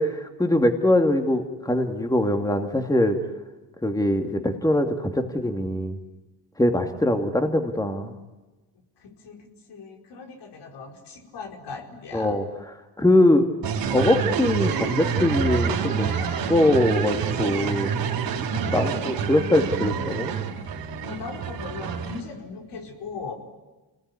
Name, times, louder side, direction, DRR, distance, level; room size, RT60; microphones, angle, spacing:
voice 1, 0.0-3.2 3.8-6.0 6.6-8.1 12.1-12.4 13.0-13.5 13.9-18.0 18.7-20.3, left 1 dB, 10° left, 5 dB, 2.4 m, -22 dB
voice 2, 9.0-12.4 18.5-19.0 21.0-23.3, left 4 dB, 75° left, 2 dB, 4.9 m, -38 dB
sound 1, 13.6-22.2, right 7 dB, 85° right, 4.1 m, -27 dB
27.5 x 20.0 x 9.8 m, 1.1 s
cardioid pair, 100°, 42 cm